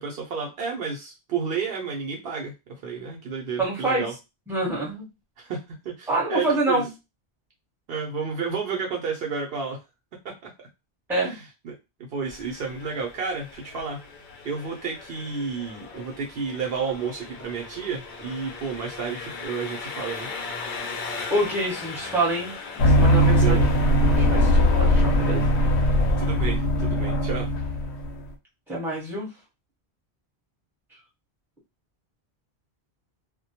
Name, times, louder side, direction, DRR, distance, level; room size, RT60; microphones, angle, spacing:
voice 1, 0.0-2.5 2.8-4.1 5.4-6.8 7.9-9.8 10.2-10.5 11.3-11.7 12.1-14.0 14.4-20.3 23.3-23.8 26.2-27.5, right 5 dB, 65° right, 0 dB, 0.8 m, -31 dB
voice 2, 3.6-4.0 4.5-5.1 6.1-6.9 11.1-11.4 21.3-23.6 24.1-25.6 28.7-29.3, right 1 dB, ahead, -4 dB, 0.8 m, -26 dB
Engine, 12.2-26.3, left 4 dB, 55° left, 0.6 m, -39 dB
sound 1, 22.8-28.2, equal, 85° left, 0.9 m, -20 dB
2.2 x 2.1 x 2.8 m, 0.25 s
omnidirectional pair, 1.1 m